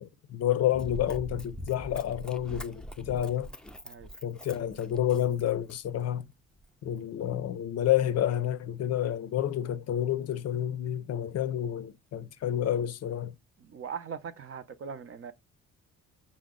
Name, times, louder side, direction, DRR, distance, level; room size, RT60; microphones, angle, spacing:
voice 1, 0.0-3.5 4.2-6.3 6.8-13.3, left 11 dB, 55° left, 0.5 m, -29 dB
Run, 0.7-6.0 6.6-6.7, equal, 5° left, 0.4 m, -43 dB
voice 2, 13.6-15.3, right 6 dB, 45° right, 0.6 m, -40 dB
5.5 x 2.1 x 3.6 m
cardioid pair, 90°, 30 cm